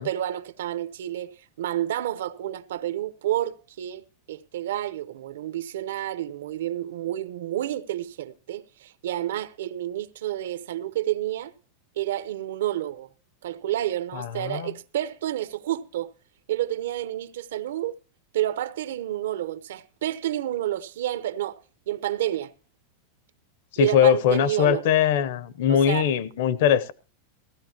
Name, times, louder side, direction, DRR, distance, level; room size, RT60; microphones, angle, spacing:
voice 1, 0.0-1.3 1.6-11.5 12.0-13.1 13.4-16.1 16.5-18.0 18.3-21.6 21.9-22.5 23.8-24.9 25.7-26.1, right 13 dB, 85° right, 0.8 m, -29 dB
voice 2, 14.1-14.7 23.7-26.9, left 9 dB, 55° left, 0.7 m, -21 dB
16.0 x 15.0 x 2.9 m
supercardioid pair, 175°, 0 cm